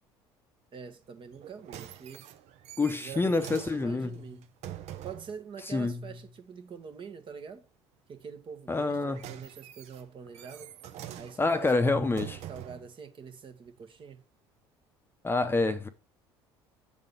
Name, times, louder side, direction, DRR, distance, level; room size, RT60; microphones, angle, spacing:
voice 1, 0.7-2.2 3.0-4.4 5.0-7.6 8.1-10.7 11.1-12.2 12.5-14.2, right 6 dB, 40° right, 1.2 m, -45 dB
sound 1, 1.3-5.4 8.7-12.9 13.7-13.8, right 11 dB, 60° right, 0.7 m, -45 dB
voice 2, 2.8-4.2 5.7-6.1 8.7-9.2 11.4-12.4 15.2-15.9, left 3 dB, 15° left, 0.7 m, -27 dB
6.9 x 3.8 x 5.2 m
hypercardioid pair, 65°, 13 cm